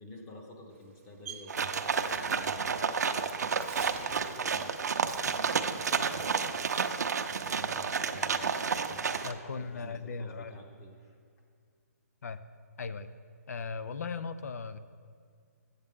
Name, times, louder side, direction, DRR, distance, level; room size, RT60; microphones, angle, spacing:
voice 1, 0.0-6.3 7.4-11.1, left 2 dB, 15° left, 1 dB, 0.8 m, -50 dB
Bird, 0.7-6.2 6.5-7.8 8.1-9.9, right 6 dB, 45° right, 0.8 m, -50 dB
sound 1, 1.5-9.3, right 5 dB, 85° right, 0.5 m, -31 dB
voice 2, 9.2-10.6 12.2-12.4 12.8-13.1 13.5-14.8, left 4 dB, 70° left, 13 dB, 0.5 m, -38 dB
11.0 x 7.9 x 3.6 m, 2.1 s
hypercardioid pair, 170°, 9 cm